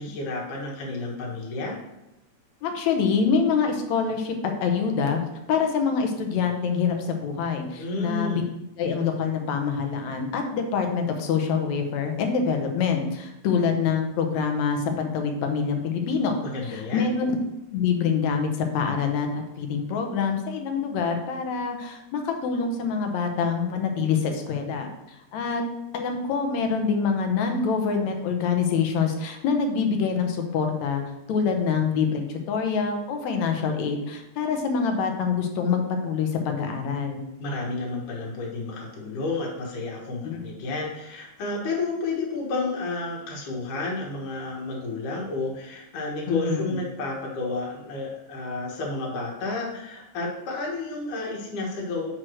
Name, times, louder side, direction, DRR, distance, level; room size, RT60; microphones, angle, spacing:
voice 1, 0.0-1.8 7.8-8.5 16.4-17.1 37.4-52.1, left 3 dB, 90° left, -2 dB, 2.8 m, -31 dB
voice 2, 2.6-5.2 5.5-8.4 8.8-17.4 17.7-25.6 25.9-31.0 31.3-37.2 40.2-40.4 46.3-46.6, left 5 dB, 75° left, 4 dB, 2.1 m, -25 dB
7.7 x 3.1 x 6.2 m, 0.92 s
omnidirectional pair, 3.5 m